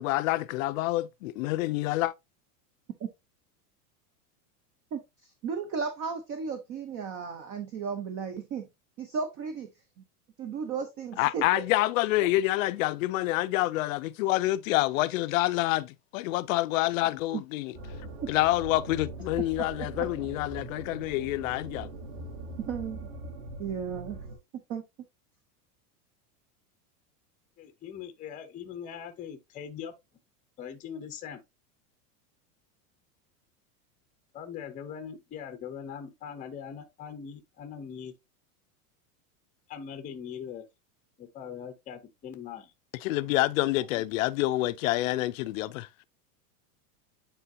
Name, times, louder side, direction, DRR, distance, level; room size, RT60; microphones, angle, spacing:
voice 1, 0.0-2.1 11.2-17.7 18.3-21.9 43.0-45.9, left 17 dB, 60° left, 0.6 m, -27 dB
voice 2, 4.9-8.7 9.0-9.7 10.4-11.6 12.2-12.3 20.0-20.1 22.6-23.1 23.6-24.2 24.7-24.8, right 6 dB, 30° right, 0.7 m, -34 dB
sound 1, 17.7-24.4, right 2 dB, 45° right, 2.6 m, -41 dB
voice 3, 27.6-29.9 30.6-31.4 34.3-38.1 39.7-40.7 41.2-42.7, left 8 dB, 15° left, 0.7 m, -41 dB
9.1 x 3.9 x 2.7 m
supercardioid pair, 155°, 46 cm